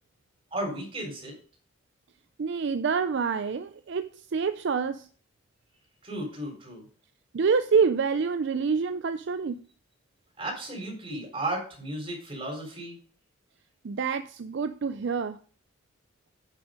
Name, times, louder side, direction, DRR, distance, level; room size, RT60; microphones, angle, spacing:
voice 1, 0.5-1.4 6.0-6.9 10.4-13.0, right 1 dB, 25° right, 4.1 m, -34 dB
voice 2, 2.4-5.1 7.3-9.6 13.8-15.4, right 5 dB, 55° right, 0.4 m, -27 dB
9.0 x 6.1 x 5.1 m
head